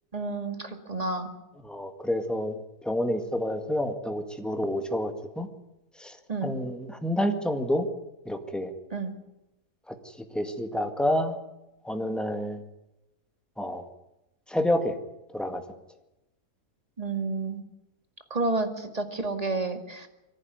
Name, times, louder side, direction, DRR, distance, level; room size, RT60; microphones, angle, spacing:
voice 1, 0.1-1.3 6.3-6.5 8.9-9.1 17.0-17.6 18.3-20.1, right 3 dB, 25° right, 6 dB, 2.2 m, -30 dB
voice 2, 1.6-5.5 6.0-6.2 6.4-7.9 8.3-8.7 9.9-10.0 10.3-11.4 11.8-12.6 13.6-13.8 14.5-15.0 15.3-15.6, left 1 dB, ahead, 5 dB, 1.9 m, -28 dB
23.0 x 15.0 x 9.3 m, 0.93 s
omnidirectional pair, 1.7 m